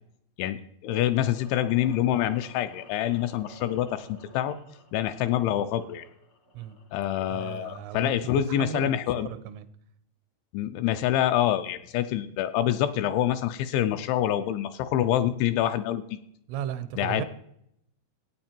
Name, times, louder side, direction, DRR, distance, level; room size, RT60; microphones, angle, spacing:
voice 1, 0.4-4.6 4.9-6.1 6.9-9.3 10.5-16.2 17.0-17.2, left 11 dB, 80° left, 9 dB, 2.7 m, -26 dB
sound 1, 1.1-7.1, equal, 60° left, 0.7 m, -51 dB
voice 2, 7.2-8.9 9.2-9.7 16.5-17.3, right 11 dB, 90° right, 14 dB, 3.3 m, -35 dB
15.0 x 9.1 x 4.4 m, 0.76 s
omnidirectional pair, 5.7 m